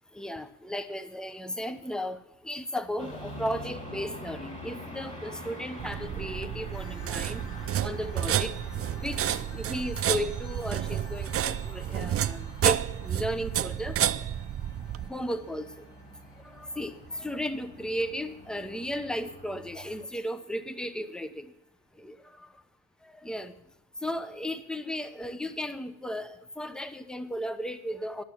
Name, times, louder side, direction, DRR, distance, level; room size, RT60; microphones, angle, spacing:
voice 1, 0.1-7.4 7.8-8.5 9.0-14.0 15.1-15.7 16.5-21.5 22.0-22.5 23.0-23.5 24.0-28.2, equal, ahead, 12 dB, 0.9 m, -35 dB
sound 1, 3.0-20.1, left 1 dB, 25° left, 4.1 m, -45 dB
sound 2, 5.8-15.1, right 11 dB, 50° right, 0.6 m, -30 dB
sound 3, 6.7-21.7, left 2 dB, 50° left, 3.1 m, -57 dB
12.0 x 6.6 x 8.8 m, 0.82 s
cardioid pair, 90°, 30 cm